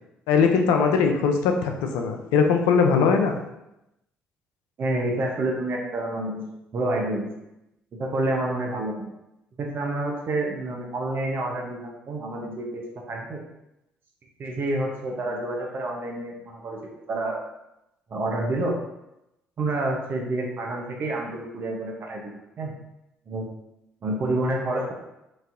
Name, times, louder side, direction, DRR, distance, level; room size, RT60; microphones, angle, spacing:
voice 1, 0.3-3.4, left 5 dB, 80° left, 3 dB, 0.4 m, -20 dB
voice 2, 4.8-6.4 6.7-7.3 8.0-9.1 9.6-13.4 14.4-16.8 17.1-17.4 18.1-18.8 19.6-22.7 23.3-23.5 24.0-24.9, right 2 dB, 50° right, -1 dB, 0.8 m, -28 dB
4.0 x 2.7 x 2.5 m, 0.88 s
hypercardioid pair, 60°, 5 cm